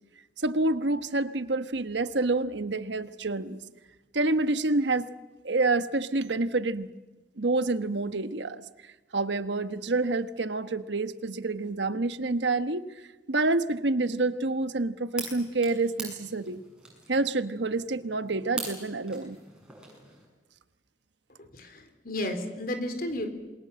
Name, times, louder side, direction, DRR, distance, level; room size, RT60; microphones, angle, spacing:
voice 1, 0.4-3.6 4.1-5.1 5.4-6.9 7.4-8.6 9.1-12.8 13.3-16.6 17.1-19.4, right 2 dB, 75° right, 12 dB, 1.2 m, -28 dB
sound 1, 15.1-20.3, right 2 dB, 5° right, 7.3 m, -42 dB
voice 2, 21.4-23.3, left 1 dB, 50° left, 7 dB, 4.0 m, -33 dB
28.0 x 22.5 x 7.6 m, 1.2 s
head